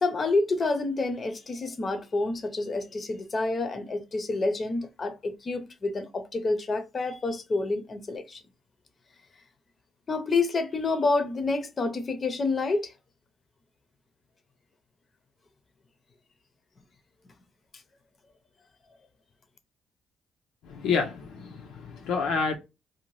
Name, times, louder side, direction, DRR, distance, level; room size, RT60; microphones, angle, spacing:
voice 1, 0.0-8.4 10.1-12.9, left 3 dB, 40° left, 0.6 m, -28 dB
voice 2, 20.6-22.6, left 5 dB, 85° left, 0.5 m, -28 dB
2.7 x 2.1 x 3.1 m
cardioid pair, 90°, 0 cm